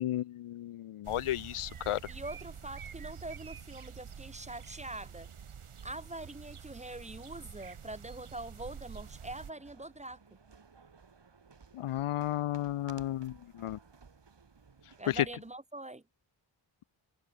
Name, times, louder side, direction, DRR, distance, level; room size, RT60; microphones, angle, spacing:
voice 1, 0.0-2.0 11.7-13.8 15.1-15.2, left 13 dB, 85° left, 0.6 m, -33 dB
sound 1, 1.0-9.5, right 7 dB, 85° right, 2.8 m, -47 dB
voice 2, 2.1-5.3 5.8-10.2 15.0-16.0, right 2 dB, 15° right, 1.3 m, -43 dB
sound 2, 8.5-15.6, right 5 dB, 55° right, 5.2 m, -58 dB
wide cardioid pair, 100°, 49 cm